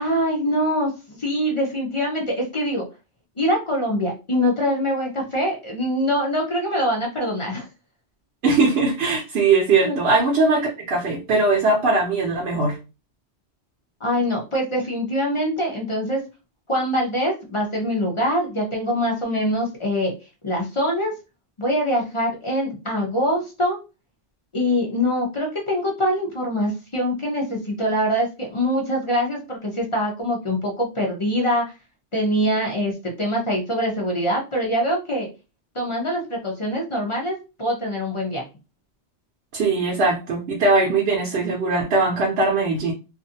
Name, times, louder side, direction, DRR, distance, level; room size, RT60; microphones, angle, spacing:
voice 1, 0.0-2.9 3.4-7.7 9.8-10.0 14.0-16.2 16.7-20.1 20.4-21.1 21.6-23.8 24.5-31.6 32.1-35.3 35.7-38.4, equal, 35° left, 0 dB, 0.6 m, -24 dB
voice 2, 8.4-12.8 39.5-42.9, right 3 dB, 65° right, -1 dB, 0.8 m, -20 dB
2.5 x 2.4 x 2.7 m, 0.29 s
omnidirectional pair, 1.2 m